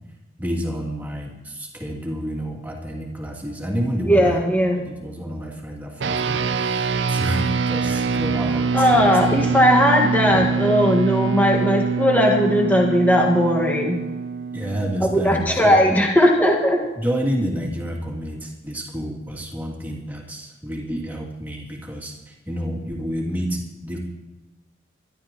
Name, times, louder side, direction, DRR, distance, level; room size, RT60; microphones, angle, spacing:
voice 1, 0.4-4.4 4.7-9.5 10.3-10.6 14.5-16.0 16.9-24.0, equal, 10° right, -2 dB, 2.6 m, -29 dB
voice 2, 4.1-4.8 8.7-14.1 15.0-16.8, equal, 10° left, -1 dB, 1.6 m, -18 dB
sound 1, 6.0-15.6, right 5 dB, 65° right, 0.5 m, -24 dB
23.5 x 12.5 x 3.0 m, 1.1 s
head